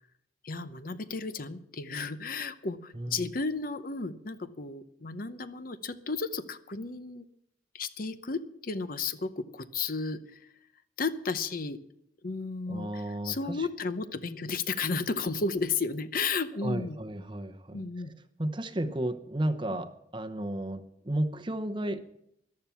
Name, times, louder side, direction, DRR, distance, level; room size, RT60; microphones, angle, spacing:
voice 1, 0.4-7.3 7.7-10.5 11.0-11.8 12.2-17.0 17.7-18.1 19.7-19.8, left 4 dB, 45° left, 12 dB, 0.8 m, -33 dB
voice 2, 2.9-3.3 12.7-13.7 16.6-18.1 18.4-22.2, right 1 dB, 25° right, 10 dB, 0.8 m, -33 dB
14.0 x 11.5 x 5.8 m, 0.75 s
head